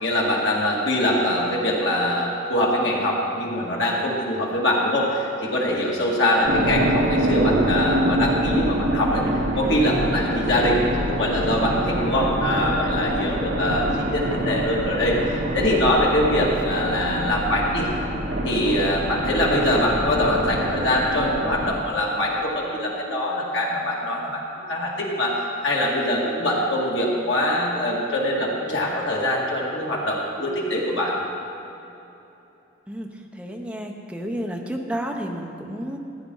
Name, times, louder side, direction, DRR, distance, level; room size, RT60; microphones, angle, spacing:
voice 1, 0.0-9.2 9.6-17.9 18.4-24.4 24.7-25.3 25.6-31.2, left 1 dB, 70° left, -3 dB, 2.1 m, -23 dB
sound 1, 6.4-21.7, right 1 dB, 70° right, 1.0 m, -25 dB
voice 2, 33.4-36.0, equal, 5° right, 1 dB, 0.8 m, -31 dB
14.5 x 9.4 x 3.9 m, 2.9 s
head